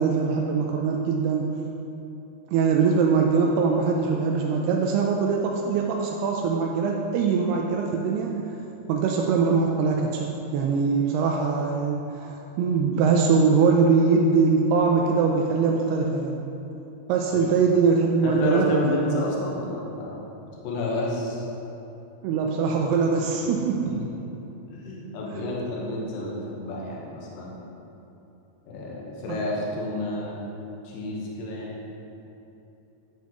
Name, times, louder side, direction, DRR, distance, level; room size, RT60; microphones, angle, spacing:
voice 1, 0.0-1.4 2.5-8.3 8.9-16.4 17.1-19.2 22.2-23.9, right 5 dB, 85° right, 0 dB, 2.6 m, -22 dB
voice 2, 18.2-20.2 20.6-21.5 23.8-24.0 24.7-27.7 28.6-30.4 30.8-31.8, left 2 dB, 70° left, -4 dB, 2.8 m, -30 dB
10.5 x 9.1 x 3.1 m, 2.9 s
omnidirectional pair, 4.5 m